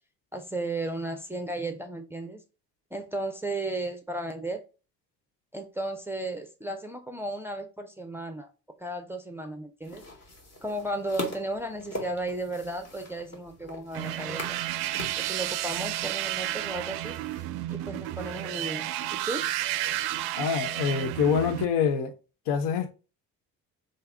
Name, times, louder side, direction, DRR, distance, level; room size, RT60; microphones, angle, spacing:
voice 1, 0.3-2.4 2.9-4.6 5.5-8.5 8.8-10.0 10.6-14.6 15.2-17.2 17.7-19.4, right 2 dB, 5° right, 0.6 m, -34 dB
sound 1, 9.8-17.4, left 1 dB, 35° left, 1.3 m, -42 dB
sound 2, 13.9-21.7, right 13 dB, 55° right, 0.5 m, -32 dB
voice 2, 20.4-22.1 22.5-22.9, left 6 dB, 60° left, 0.8 m, -25 dB
3.3 x 2.6 x 3.5 m
hypercardioid pair, 50°, 47 cm